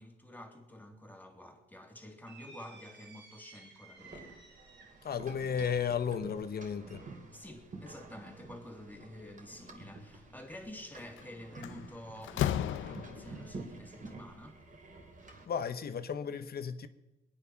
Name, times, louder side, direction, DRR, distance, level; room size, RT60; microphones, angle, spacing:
voice 1, 0.0-4.4 7.3-14.6, left 1 dB, 10° left, 2.9 m, -49 dB
sound 1, 2.3-5.1, right 3 dB, 60° right, 3.6 m, -55 dB
sound 2, 4.0-15.5, right 3 dB, 40° right, 3.1 m, -50 dB
voice 2, 5.0-7.0 15.5-16.9, left 7 dB, 50° left, 1.2 m, -34 dB
Slam, 11.0-11.2 11.6-13.5, left 12 dB, 75° left, 0.7 m, -34 dB
22.0 x 9.8 x 5.9 m
cardioid pair, 90°, 20 cm